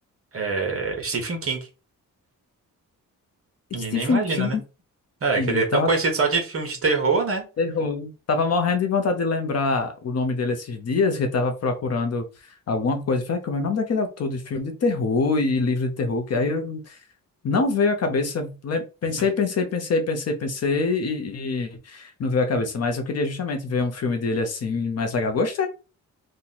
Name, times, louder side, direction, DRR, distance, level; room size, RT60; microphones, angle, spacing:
voice 1, 0.3-1.7 3.7-4.6 5.2-7.4, right 4 dB, 40° right, 3 dB, 1.0 m, -24 dB
voice 2, 3.9-4.5 5.4-5.9 7.6-12.2 12.7-17.0 17.4-25.7, left 4 dB, 45° left, 6 dB, 0.6 m, -24 dB
2.9 x 2.1 x 3.8 m, 0.31 s
wide cardioid pair, 160°, 34 cm